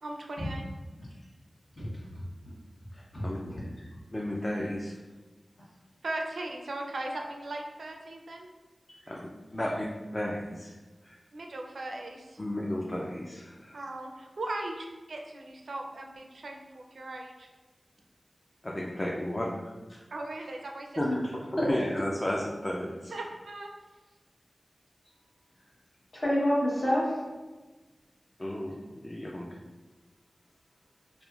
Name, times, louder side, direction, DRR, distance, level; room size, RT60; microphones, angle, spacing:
voice 1, 0.0-0.6 6.0-8.5 11.3-12.4 13.7-17.5 20.1-20.9 23.1-23.7, right 2 dB, 85° right, 1 dB, 0.4 m, -38 dB
voice 2, 1.8-2.5 3.1-3.6 21.0-21.3 21.6-21.7 26.1-27.1, equal, 65° left, -7 dB, 1.1 m, -29 dB
voice 3, 2.9-3.7 4.1-5.0 9.1-9.9 10.1-10.7 11.0-11.2 12.4-13.8 18.6-19.7 21.0-21.1 21.6-23.1 28.4-29.5, left 1 dB, 30° left, -3 dB, 0.4 m, -33 dB
3.5 x 2.5 x 2.3 m, 1.2 s
cardioid pair, 45°, 0 cm